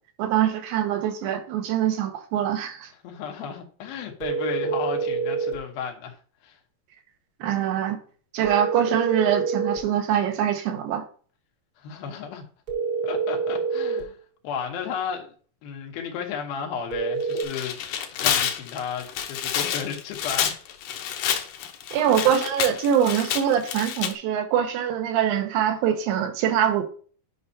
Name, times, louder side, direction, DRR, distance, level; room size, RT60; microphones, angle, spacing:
voice 1, 0.2-2.9 7.4-8.0 8.3-11.0 21.9-26.8, right 9 dB, 80° right, 2.7 m, -23 dB
voice 2, 3.0-6.2 6.4-6.6 11.8-12.4 13.0-14.2 14.4-15.3 15.6-17.8 18.2-20.6, left 7 dB, 90° left, 3.0 m, -33 dB
sound 1, 4.2-5.6 8.4-9.9 12.7-14.1 16.9-17.4, right 5 dB, 55° right, 1.0 m, -26 dB
Tearing, 17.2-24.1, left 9 dB, 75° left, 2.1 m, -28 dB
9.4 x 5.4 x 2.7 m
omnidirectional pair, 4.2 m